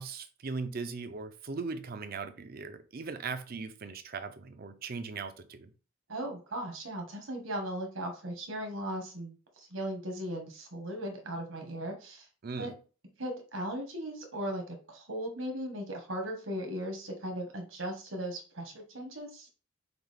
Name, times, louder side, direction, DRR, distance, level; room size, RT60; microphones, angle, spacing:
voice 1, 0.0-5.7 12.4-12.8, right 4 dB, 45° right, 0.5 m, -39 dB
voice 2, 6.1-12.3 12.6-12.7 13.2-19.5, right 1 dB, 70° right, 1.3 m, -37 dB
5.9 x 2.4 x 3.4 m
head